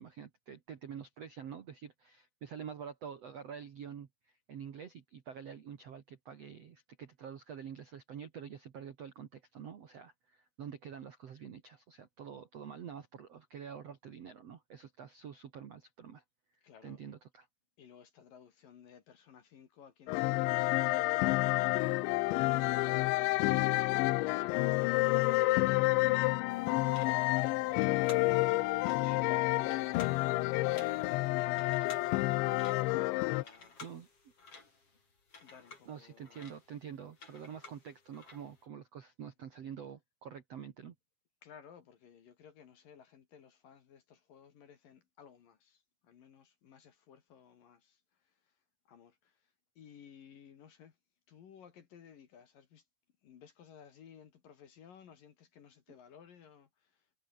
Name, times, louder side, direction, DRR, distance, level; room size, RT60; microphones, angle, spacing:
voice 1, 0.0-16.2 16.8-17.5 29.0-29.3 33.8-34.1 35.8-40.9, right 8 dB, 75° right, 1.4 m, -47 dB
voice 2, 16.6-17.0 17.8-23.3 24.3-25.5 25.8-27.0 28.3-33.0 33.3-33.7 35.4-36.5 41.4-48.3 48.9-49.5 49.8-51.0 51.3-52.8 53.2-57.0, left 8 dB, 55° left, 3.2 m, -58 dB
sound 1, 20.1-33.4, left 20 dB, 80° left, 2.8 m, -29 dB
sound 2, 26.5-38.6, left 4 dB, 30° left, 5.6 m, -54 dB
omnidirectional pair, 5.6 m